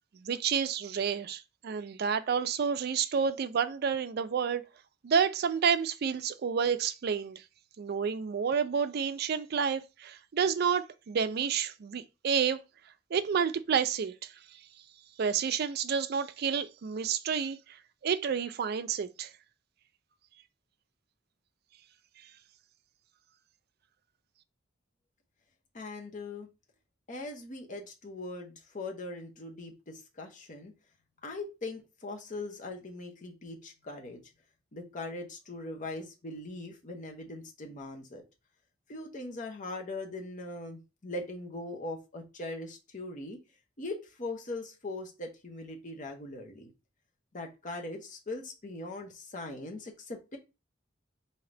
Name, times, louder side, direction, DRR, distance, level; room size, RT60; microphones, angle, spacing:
voice 1, 0.1-4.6 5.0-7.4 7.8-12.6 13.1-14.3 15.2-17.6 18.0-19.3, right 6 dB, 55° right, 0.4 m, -29 dB
voice 2, 25.7-26.5 27.1-30.7 31.2-34.2 34.7-38.2 38.9-43.4 43.8-46.7 47.3-50.4, left 2 dB, 40° left, 0.9 m, -40 dB
3.7 x 2.8 x 3.3 m
head